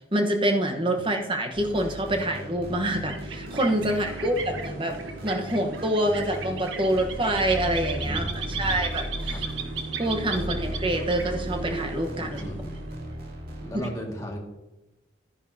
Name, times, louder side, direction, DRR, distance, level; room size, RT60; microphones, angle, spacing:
voice 1, 0.1-5.0 5.2-8.3 8.6-9.4 10.0-12.4, right 1 dB, 25° right, 4 dB, 1.1 m, -26 dB
sound 1, 1.5-13.8, equal, 50° right, 2.4 m, -36 dB
sound 2, 2.8-13.1, right 4 dB, 80° right, 1.2 m, -37 dB
voice 2, 8.0-8.9 9.3-9.4 10.4-10.6 12.4-12.7 13.6-14.4, equal, 15° left, -2 dB, 2.0 m, -36 dB
11.0 x 10.5 x 2.8 m, 1.0 s
head